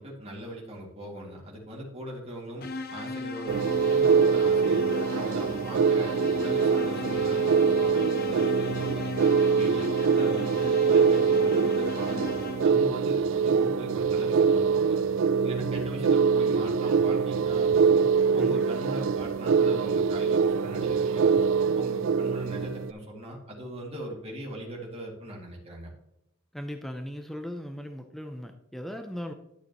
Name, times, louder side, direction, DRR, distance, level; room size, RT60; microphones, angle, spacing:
voice 1, 0.0-12.4 12.6-15.0 15.4-18.0 18.3-21.3 21.7-25.9, equal, 30° right, -3 dB, 2.4 m, -40 dB
sound 1, 2.6-13.0, left 3 dB, 45° left, 0.8 m, -37 dB
sound 2, 3.5-22.9, right 5 dB, 65° right, 0.4 m, -24 dB
voice 2, 26.5-29.3, equal, ahead, 5 dB, 0.5 m, -38 dB
11.5 x 6.6 x 3.0 m, 0.83 s
head